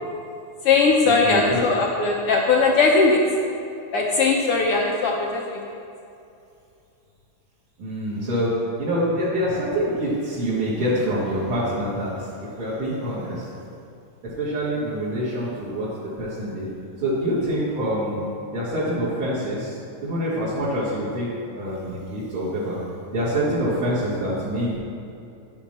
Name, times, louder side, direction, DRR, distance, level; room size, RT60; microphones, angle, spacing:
voice 1, 0.6-3.2 3.9-5.6, left 4 dB, 70° left, -1 dB, 1.4 m, -19 dB
voice 2, 1.2-1.6 7.8-8.5 8.8-13.5 14.2-15.9 16.2-16.7 17.0-18.2 18.5-21.3 21.5-22.8 23.1-24.8, equal, 45° right, -10 dB, 2.8 m, -26 dB
10.5 x 7.2 x 5.9 m, 2.6 s
omnidirectional pair, 3.4 m